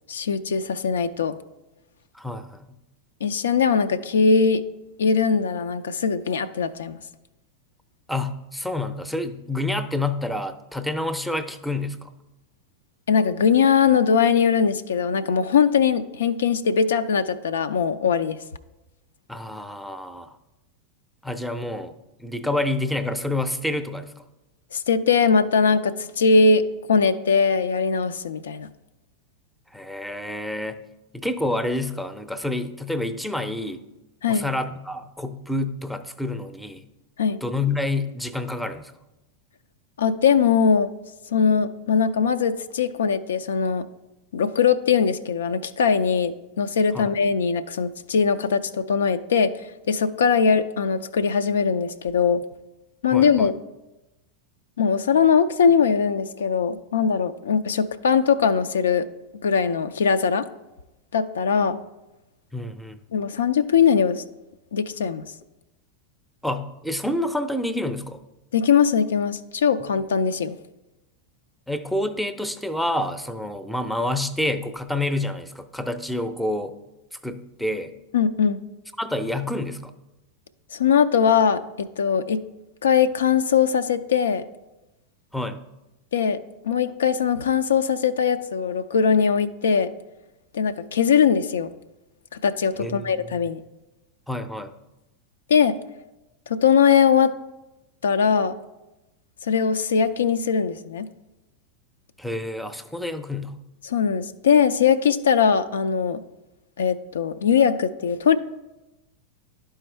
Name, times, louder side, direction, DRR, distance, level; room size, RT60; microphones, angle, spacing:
voice 1, 0.1-1.4 3.2-4.6 5.0-7.0 13.1-18.4 24.7-26.6 26.9-28.7 34.2-34.5 37.2-37.4 40.0-40.9 41.3-43.8 44.3-49.5 49.9-52.4 53.0-53.6 54.8-59.1 59.4-60.4 61.1-61.8 63.1-64.2 64.7-65.2 68.5-70.6 78.1-78.6 80.7-82.4 82.8-84.4 86.1-86.4 86.6-89.9 90.5-91.7 92.4-93.6 95.5-95.8 96.5-97.3 98.0-98.6 99.5-101.1 103.9-106.2 106.8-108.4, left 6 dB, 70° left, 10 dB, 0.3 m, -21 dB
voice 2, 2.1-2.7 8.1-12.1 19.3-20.3 21.2-21.9 22.2-24.1 29.7-30.8 31.1-33.8 34.3-36.9 37.4-38.9 46.9-47.1 53.1-53.5 62.5-63.0 66.4-68.2 69.8-69.9 71.7-76.7 77.2-77.9 79.0-79.9 85.3-85.6 92.8-93.4 94.3-94.7 102.2-103.5, left 1 dB, ahead, 11 dB, 0.5 m, -28 dB
11.0 x 4.4 x 3.4 m, 0.98 s
figure-of-eight pair, 90°, 0 cm